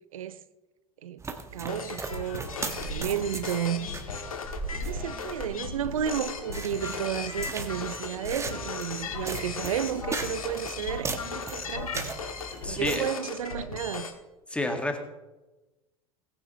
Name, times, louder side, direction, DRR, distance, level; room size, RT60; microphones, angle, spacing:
sound 1, 1.2-13.0, right 4 dB, 15° right, 1.4 m, -38 dB
sound 2, 1.5-14.1, left 5 dB, 75° left, 1.5 m, -37 dB
voice 1, 1.5-3.9 4.7-12.1 12.6-14.1, right 9 dB, 70° right, 0.7 m, -32 dB
voice 2, 12.6-13.0 14.5-15.0, left 1 dB, 5° left, 2.0 m, -29 dB
19.0 x 9.5 x 3.2 m
figure-of-eight pair, 75°, 18 cm